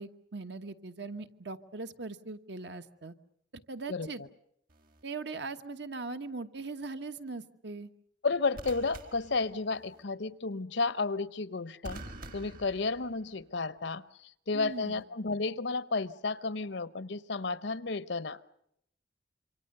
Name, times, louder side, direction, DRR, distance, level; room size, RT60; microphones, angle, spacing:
voice 1, 0.0-3.1 3.7-4.2 5.0-7.9 14.5-15.0, right 3 dB, 65° right, 9 dB, 1.2 m, -40 dB
voice 2, 3.9-4.3 8.2-12.0 12.3-18.4, left 3 dB, 70° left, 17 dB, 0.9 m, -32 dB
sound 1, 4.7-5.0 8.5-10.0 11.8-13.5 14.7-15.0, right 2 dB, 50° right, 1.7 m, -47 dB
27.5 x 24.5 x 6.7 m, 0.76 s
head